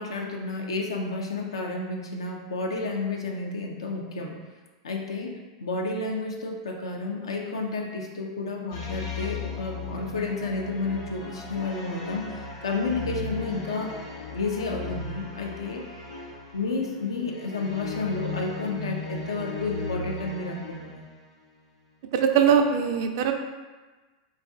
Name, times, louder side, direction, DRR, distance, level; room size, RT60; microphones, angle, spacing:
voice 1, 0.0-4.4 4.8-14.0 14.3-15.8 16.5-21.0, left 3 dB, 80° left, 1 dB, 0.5 m, -31 dB
sound 1, 8.7-21.2, left 3 dB, 60° left, 0.9 m, -37 dB
voice 2, 22.1-23.3, right 7 dB, 55° right, 5 dB, 0.3 m, -21 dB
4.0 x 2.4 x 2.4 m, 1.3 s
hypercardioid pair, 95°, 3 cm